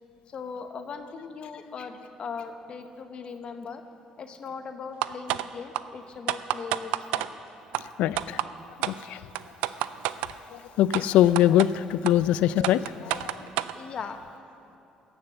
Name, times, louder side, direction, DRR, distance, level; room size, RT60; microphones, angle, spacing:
voice 1, 0.3-3.8 4.2-7.3 13.7-14.2, left 5 dB, 50° left, 7 dB, 1.0 m, -39 dB
sound 1, 5.0-5.5 5.7-5.8 6.3-7.3 7.7-7.8 8.2-8.5 8.8-9.0 9.4-10.3 10.9-11.0 11.4-11.7 12.1-12.2 12.6-13.7, right 15 dB, 90° right, 0.3 m, -28 dB
voice 2, 8.0-8.4 8.8-9.2 10.5-13.5, left 12 dB, 80° left, 17 dB, 0.3 m, -23 dB
16.5 x 6.7 x 6.9 m, 2.7 s
supercardioid pair, 80°, 2 cm